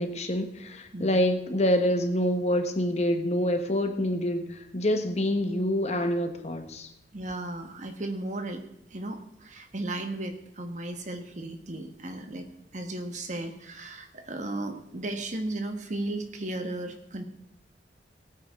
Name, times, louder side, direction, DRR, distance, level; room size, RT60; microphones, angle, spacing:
voice 1, 0.0-6.9, left 1 dB, 40° left, 7 dB, 1.2 m, -26 dB
voice 2, 7.1-8.6 8.9-17.2, right 2 dB, 45° right, 6 dB, 1.4 m, -35 dB
19.5 x 8.7 x 3.7 m, 0.83 s
head